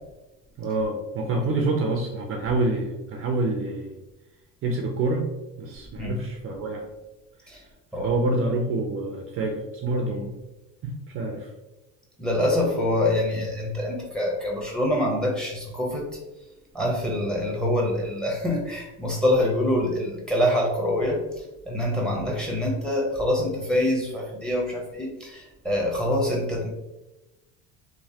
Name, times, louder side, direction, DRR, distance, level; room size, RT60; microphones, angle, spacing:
voice 1, 0.6-4.0 4.6-5.3 5.6-6.9 7.5-7.6 8.0-10.3 10.8-11.5, right 2 dB, 40° right, 1 dB, 0.5 m, -27 dB
voice 2, 12.2-16.1 16.7-21.2 21.7-26.7, left 1 dB, ahead, -1 dB, 0.8 m, -25 dB
3.1 x 2.1 x 2.7 m, 1.0 s
supercardioid pair, 100°, 34 cm